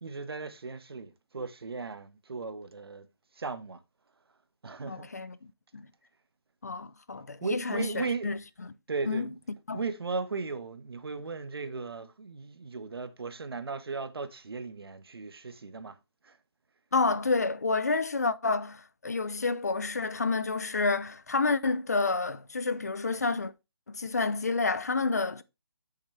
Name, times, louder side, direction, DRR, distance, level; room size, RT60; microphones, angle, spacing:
voice 1, 0.0-3.1 3.4-3.8 4.6-5.1 7.4-8.3 8.9-9.4 9.7-16.0 16.2-16.4, right 4 dB, 65° right, 1.3 m, -36 dB
voice 2, 4.8-5.9 6.6-8.7 9.1-9.3 9.7-9.8 16.9-23.5 23.9-25.4, left 3 dB, 40° left, 0.5 m, -29 dB
8.8 x 6.5 x 3.2 m
hypercardioid pair, 180°, 14 cm